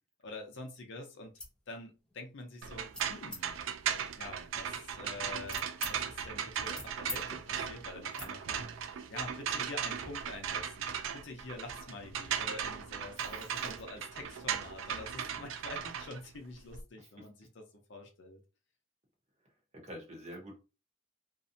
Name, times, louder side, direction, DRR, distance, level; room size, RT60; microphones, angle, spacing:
voice 1, 0.2-1.3 1.7-3.5 4.2-5.6 5.9-18.4, left 2 dB, 65° left, 3 dB, 0.6 m, -47 dB
sound 1, 1.2-1.6 2.0-2.4 2.9-3.4 4.1-5.9 6.4-7.2 7.5-7.7 8.1-8.3, left 2 dB, 5° left, 0.6 m, -45 dB
sound 2, 2.6-16.8, right 8 dB, 75° right, 0.3 m, -37 dB
voice 2, 19.8-20.6, equal, 35° right, 0 dB, 0.9 m, -46 dB
2.6 x 2.1 x 2.6 m, 0.31 s
head